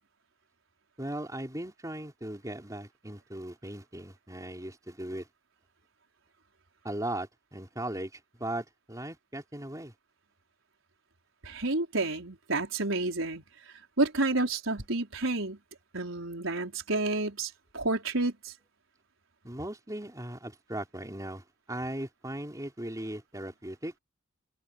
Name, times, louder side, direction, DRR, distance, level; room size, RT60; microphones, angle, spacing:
voice 1, 1.0-5.3 6.8-9.9 19.4-23.9, right 1 dB, 15° right, 3.7 m, -38 dB
voice 2, 11.4-13.4 14.0-15.6 15.9-18.5, right 2 dB, 80° right, 4.9 m, -30 dB
open air
head